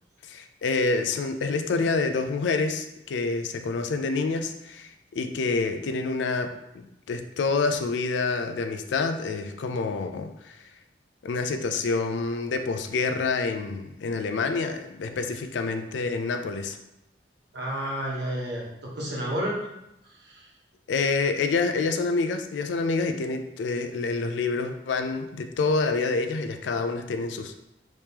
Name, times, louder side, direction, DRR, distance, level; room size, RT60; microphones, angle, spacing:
voice 1, 0.2-10.6 11.2-16.8 20.9-27.6, left 4 dB, 85° left, 7 dB, 0.4 m, -27 dB
voice 2, 17.5-19.7 20.0-20.5, equal, 70° right, -3 dB, 1.0 m, -31 dB
3.5 x 3.0 x 2.8 m, 0.85 s
head